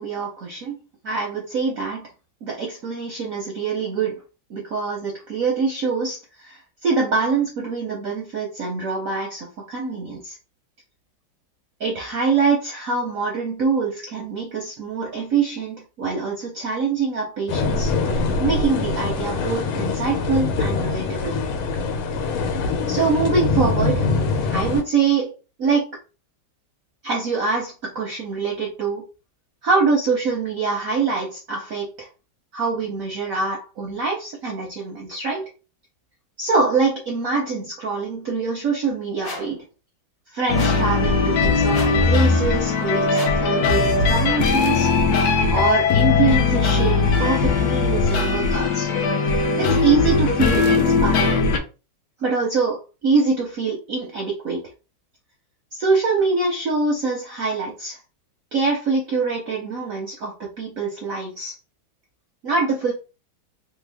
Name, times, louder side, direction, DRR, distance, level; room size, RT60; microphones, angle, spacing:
voice 1, 0.0-2.1 2.4-4.2 4.5-10.4 11.8-21.4 22.9-24.1 24.4-26.0 27.0-29.1 29.6-32.1 32.5-35.5 36.4-39.6 40.3-48.9 49.6-51.3 52.2-54.6 55.7-58.0 58.5-61.5 62.4-62.9, right 4 dB, 65° right, -1 dB, 0.8 m, -24 dB
sound 1, 17.5-24.8, left 3 dB, 85° left, 1.5 m, -23 dB
sound 2, 39.2-39.6 40.5-40.9 41.7-42.1 43.1-43.5, left 3 dB, 45° left, 1.4 m, -33 dB
sound 3, 40.5-51.6, left 4 dB, 70° left, 0.9 m, -19 dB
3.4 x 2.0 x 3.4 m, 0.31 s
omnidirectional pair, 2.2 m